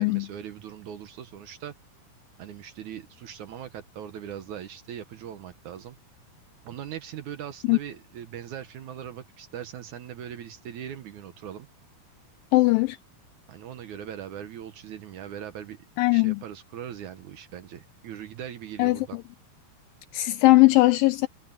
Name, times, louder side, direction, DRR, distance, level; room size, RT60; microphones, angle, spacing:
voice 1, 0.0-1.7 2.4-6.0 6.7-11.7 13.5-15.8 16.1-19.2, right 10 dB, 65° right, 2.0 m, -40 dB
voice 2, 12.5-13.0 16.0-16.4 18.8-19.0 20.1-21.3, left 21 dB, 85° left, 2.0 m, -19 dB
omnidirectional pair, 4.5 m